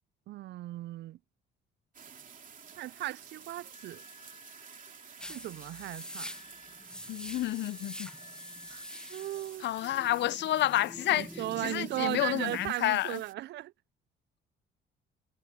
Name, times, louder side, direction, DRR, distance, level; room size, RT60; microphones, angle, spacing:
voice 1, 0.3-1.2 2.8-4.0 5.3-6.3 8.7-8.8 9.1-9.7 11.1-13.7, right 15 dB, 60° right, 0.4 m, -36 dB
sound 1, 1.9-13.3, right 7 dB, 40° right, 2.9 m, -52 dB
Wind instrument woodwind instrument, 3.7-10.1 10.4-11.1, left 5 dB, 35° left, 6.9 m, -58 dB
sound 2, 5.2-12.7, left 1 dB, 5° left, 1.4 m, -46 dB
voice 2, 7.1-8.1 9.6-13.2, left 14 dB, 65° left, 0.7 m, -30 dB
cardioid pair, 95°, 20 cm